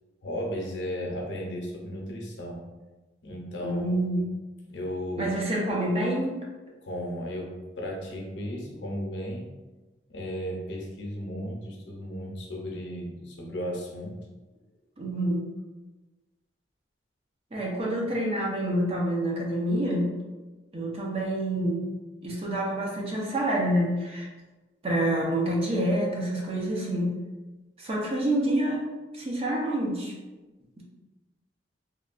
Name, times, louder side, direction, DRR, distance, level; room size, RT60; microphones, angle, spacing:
voice 1, 0.2-2.6 3.2-4.0 4.7-5.3 6.8-9.5 10.1-14.1, equal, 80° left, -1 dB, 0.6 m, -35 dB
voice 2, 3.6-4.2 5.2-6.4 15.0-15.5 17.5-20.1 20.7-21.9 22.2-24.3 24.8-27.1 27.8-28.9 29.1-30.1, right 1 dB, 35° right, -3 dB, 0.6 m, -27 dB
3.1 x 2.3 x 2.4 m, 1.2 s
head